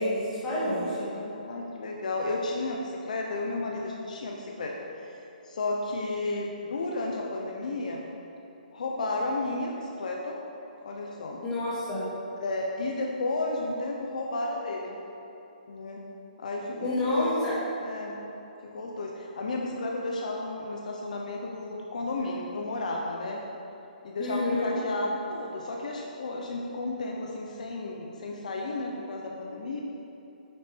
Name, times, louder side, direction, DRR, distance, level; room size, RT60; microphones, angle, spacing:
voice 1, 0.0-1.0 11.4-12.1 16.8-17.5 24.2-24.8, left 1 dB, 10° left, -10 dB, 2.0 m, -28 dB
voice 2, 0.6-5.2 5.4-8.1 8.7-10.4 10.8-11.4 12.4-15.0 15.7-16.0 16.4-17.3 17.8-18.2 18.6-23.4 24.0-29.8, left 2 dB, 55° left, -1 dB, 0.8 m, -33 dB
8.8 x 6.6 x 4.6 m, 3.0 s
hypercardioid pair, 175°, 5 cm